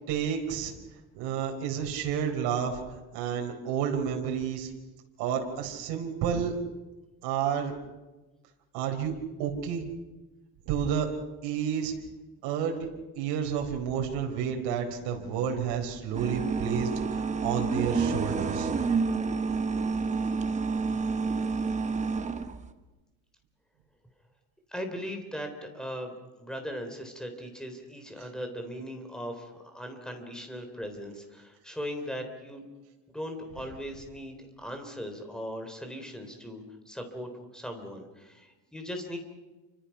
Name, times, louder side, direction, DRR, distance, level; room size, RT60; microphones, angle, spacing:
voice 1, 0.1-0.7 1.1-2.8 3.1-4.7 5.2-6.5 7.2-7.7 8.7-9.1 9.4-9.9 10.7-11.1 11.4-11.9 12.4-12.9 13.2-18.7, right 8 dB, 75° right, 2 dB, 4.4 m, -30 dB
sound 1, 16.1-22.7, right 4 dB, 15° right, 1.1 m, -29 dB
voice 2, 24.7-32.6 33.1-39.2, equal, ahead, 5 dB, 3.6 m, -39 dB
29.0 x 25.0 x 5.9 m, 1.2 s
cardioid pair, 170°, 41 cm